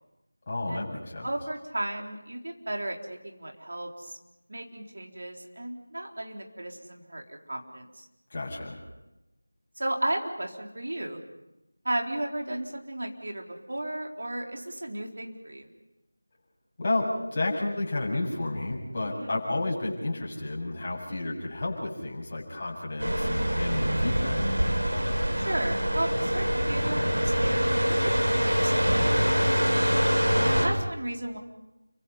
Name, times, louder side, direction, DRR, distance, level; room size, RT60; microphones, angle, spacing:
voice 1, 0.5-1.3 8.3-8.8 16.8-24.4 30.3-30.6, left 2 dB, 30° left, -4 dB, 7.6 m, -31 dB
voice 2, 1.2-4.2 4.5-8.1 9.8-11.2 11.8-15.7 19.1-19.3 25.5-29.9 30.4-31.4, right 1 dB, 55° right, 1 dB, 4.1 m, -34 dB
sound 1, 23.0-30.7, equal, 75° right, 6.6 m, -25 dB
30.0 x 24.5 x 5.7 m, 0.94 s
figure-of-eight pair, 165°, 0 cm